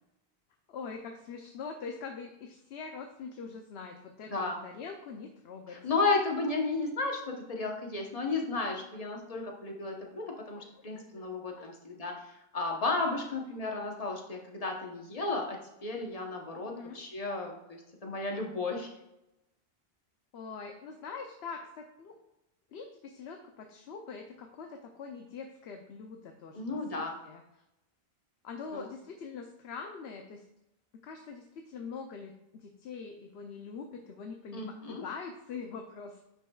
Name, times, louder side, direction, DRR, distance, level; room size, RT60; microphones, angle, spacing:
voice 1, 0.7-5.8 10.5-10.6 11.6-11.7 16.6-17.0 20.3-22.1 22.7-26.6 26.9-27.4 28.4-30.4 31.0-36.3, left 5 dB, 80° left, 4 dB, 0.9 m, -43 dB
voice 2, 5.7-18.9 26.5-27.2 28.7-28.8 34.5-35.0, left 3 dB, 35° left, 1 dB, 1.1 m, -33 dB
8.7 x 5.5 x 2.3 m, 0.89 s
omnidirectional pair, 1.1 m